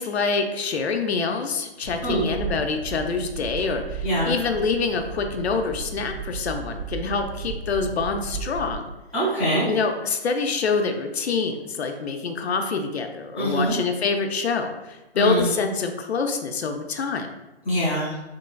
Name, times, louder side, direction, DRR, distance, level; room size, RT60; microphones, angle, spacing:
voice 1, 0.0-8.9 9.7-17.3, left 4 dB, 80° left, 5 dB, 0.5 m, -26 dB
Interior Prius turn signal stop driving stop, 1.8-8.8, right 5 dB, 70° right, 0.7 m, -35 dB
voice 2, 4.0-4.3 9.1-9.7 13.3-13.7 15.1-15.5 17.6-18.1, right 1 dB, 15° right, -12 dB, 0.5 m, -23 dB
3.8 x 3.0 x 2.2 m, 1.0 s
hypercardioid pair, 175°, 32 cm